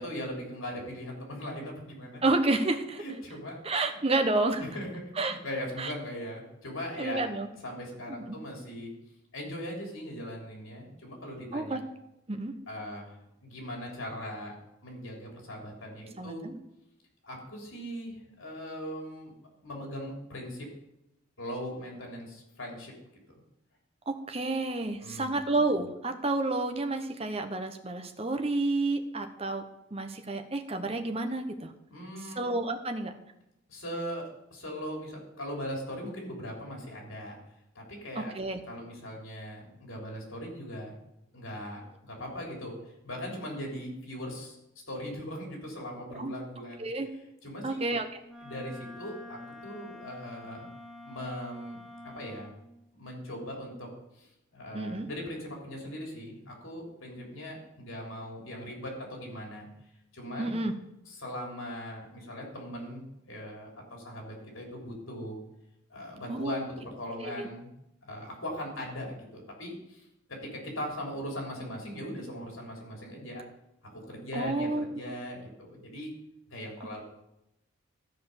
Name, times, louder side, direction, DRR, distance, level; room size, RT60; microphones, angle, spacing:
voice 1, 0.0-2.2 3.0-3.6 3.9-4.0 4.6-7.3 7.6-8.9 9.3-11.8 12.7-14.6 14.8-16.5 17.2-19.3 19.6-20.7 21.4-22.9 25.0-25.4 31.9-32.4 33.7-37.4 37.7-38.3 38.6-41.0 41.3-42.7 43.0-44.6 44.9-46.9 47.4-47.8 48.4-50.7 51.0-51.8 52.0-52.5 52.9-53.9 54.1-59.7 60.1-60.5 61.0-65.4 65.9-67.7 68.0-73.4 73.8-76.1 76.5-77.0, equal, 80° left, 0 dB, 3.4 m, -39 dB
voice 2, 2.2-3.0 3.6-4.6 5.2-5.4 5.8-5.9 7.0-7.5 8.1-8.4 11.5-11.8 12.3-12.5 16.2-16.6 24.1-29.6 29.9-31.7 32.4-33.1 38.2-38.6 46.1-46.3 46.8-47.1 47.6-48.0 54.7-55.1 60.4-60.7 66.3-66.6 67.2-67.5 74.3-74.8, right 2 dB, 30° right, 5 dB, 0.9 m, -30 dB
Wind instrument woodwind instrument, 48.2-52.6, left 1 dB, ahead, 1.1 m, -47 dB
13.5 x 5.1 x 6.7 m, 0.86 s
head